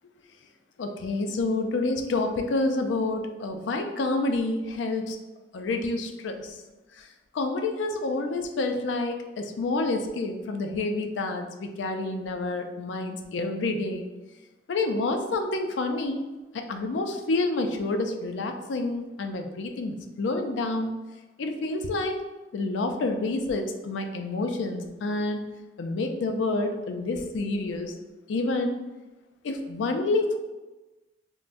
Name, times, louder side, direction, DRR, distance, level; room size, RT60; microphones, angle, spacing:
voice 1, 0.8-5.2 5.5-6.6 7.3-14.0 14.7-16.2 16.5-20.9 21.4-22.2 22.5-25.4 25.8-27.9 28.3-28.8 29.4-30.4, left 2 dB, 90° left, 6 dB, 0.4 m, -28 dB
3.6 x 2.0 x 2.5 m, 1.1 s
head